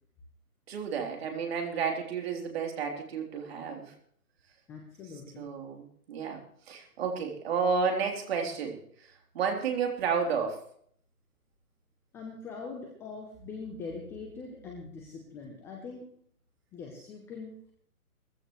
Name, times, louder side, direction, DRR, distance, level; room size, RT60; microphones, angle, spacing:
voice 1, 0.7-3.9 5.4-9.1 9.3-10.6, right 5 dB, 40° right, 2 dB, 3.6 m, -31 dB
voice 2, 4.7-5.5 12.1-16.1 16.7-17.5, left 4 dB, 5° left, 0 dB, 0.7 m, -42 dB
19.5 x 15.0 x 3.2 m, 0.63 s
hypercardioid pair, 145°, 45 cm